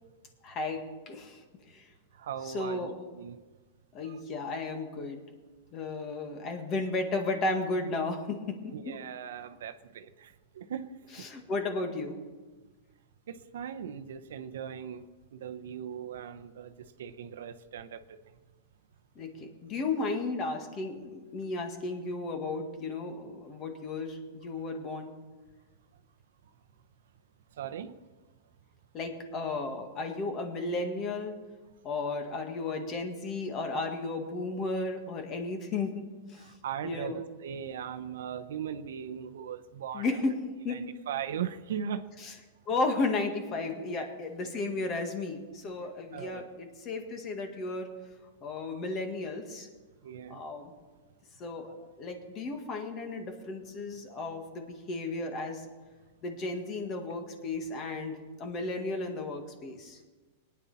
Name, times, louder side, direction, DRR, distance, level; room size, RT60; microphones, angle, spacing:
voice 1, 0.4-1.4 1.7-1.9 2.4-3.0 3.9-5.2 5.7-8.9 11.2-12.2 19.2-25.1 28.9-31.4 31.8-36.0 36.3-36.5 36.8-37.2 39.9-40.4 40.6-40.8 42.2-42.3 42.7-47.9 48.4-49.7 50.3-50.7 51.4-55.7 56.2-60.0, left 3 dB, 25° left, 5 dB, 1.8 m, -34 dB
voice 2, 2.2-3.4 8.7-10.9 13.3-15.0 15.3-16.7 17.0-18.0 27.6-27.9 36.4-40.1 40.7-42.0 44.4-44.5 46.1-46.5 50.0-50.4, right 8 dB, 80° right, 9 dB, 0.9 m, -38 dB
22.0 x 9.8 x 4.2 m, 1.3 s
supercardioid pair, 160°, 0 cm